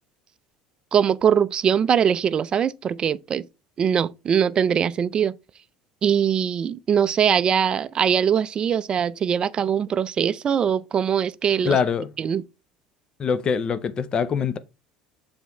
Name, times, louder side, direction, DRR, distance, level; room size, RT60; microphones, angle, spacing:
voice 1, 0.9-3.5 3.8-5.3 6.0-11.8 12.2-12.4, right 8 dB, 30° right, 0.4 m, -22 dB
voice 2, 11.6-12.1 13.2-14.6, left 6 dB, 30° left, 0.5 m, -23 dB
7.5 x 3.5 x 4.2 m
supercardioid pair, 130°, 3 cm